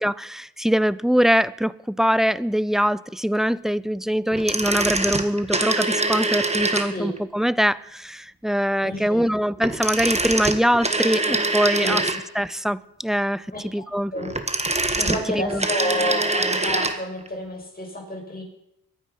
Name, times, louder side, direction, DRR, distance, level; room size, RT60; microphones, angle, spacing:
voice 1, 0.0-12.0 12.4-14.1 15.3-15.7, equal, ahead, 0.4 m, -23 dB
sound 1, 4.3-7.2 9.6-12.5 14.1-17.0 17.3-17.4, right 2 dB, 20° right, 1.5 m, -24 dB
voice 2, 8.8-9.2 11.8-12.0 13.5-13.8 14.1-14.3 15.0-18.4, left 1 dB, 25° left, 6.7 m, -30 dB
23.0 x 9.5 x 5.5 m
cardioid pair, 80°, 35 cm